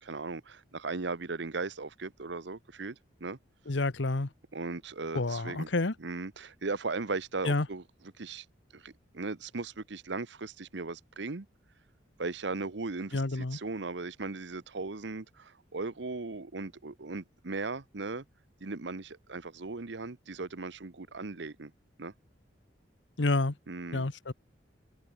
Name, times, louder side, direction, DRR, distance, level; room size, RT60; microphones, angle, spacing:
voice 1, 0.0-3.4 4.5-5.7 6.0-7.8 8.2-8.4 8.7-11.5 12.2-18.2 18.6-21.7 22.0-22.1 23.7-24.1, right 3 dB, 70° right, 1.0 m, -37 dB
voice 2, 3.7-4.3 5.1-5.9 7.4-7.7 13.1-13.6 23.2-23.5 23.9-24.3, left 2 dB, 80° left, 1.2 m, -29 dB
head